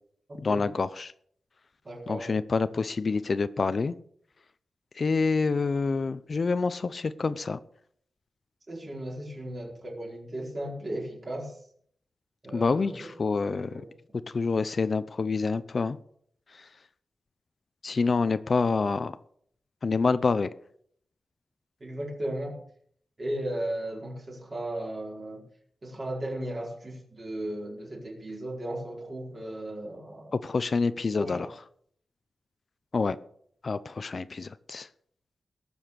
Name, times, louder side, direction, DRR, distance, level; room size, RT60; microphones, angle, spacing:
voice 1, 0.4-1.1 2.1-3.9 5.0-7.6 12.5-13.7 14.3-16.0 17.8-19.1 19.8-20.5 30.3-31.5 32.9-33.2 33.6-34.9, left 4 dB, 45° left, 0.6 m, -27 dB
voice 2, 1.8-2.3 8.7-11.5 12.4-13.1 13.4-14.0 21.8-22.6 23.2-25.4 25.8-30.4 31.2-31.5, right 1 dB, 35° right, 4.5 m, -36 dB
19.0 x 7.1 x 6.7 m
wide cardioid pair, 115°, 0 cm